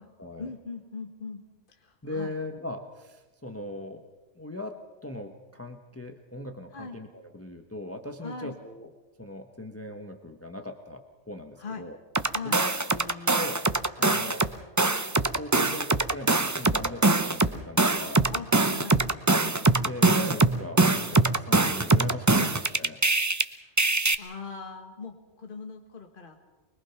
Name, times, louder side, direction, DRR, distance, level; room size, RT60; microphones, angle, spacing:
voice 1, 0.4-2.4 6.7-7.0 8.2-8.6 11.6-11.9 12.3-12.6 14.0-14.2 15.6-15.8 18.3-19.0 20.1-20.3 22.3-22.6 23.5-23.7 24.2-26.4, left 4 dB, 45° left, 3 dB, 1.8 m, -40 dB
voice 2, 2.0-4.0 4.4-7.1 7.3-8.9 9.2-12.0 12.4-13.6 14.0-14.4 15.4-18.2 19.8-23.0, left 1 dB, 10° left, 4 dB, 1.2 m, -39 dB
sound 1, 12.1-14.5 14.8-23.4 23.8-24.1, right 3 dB, 20° right, 0.6 m, -23 dB
25.0 x 22.5 x 5.9 m, 1.2 s
omnidirectional pair, 1.3 m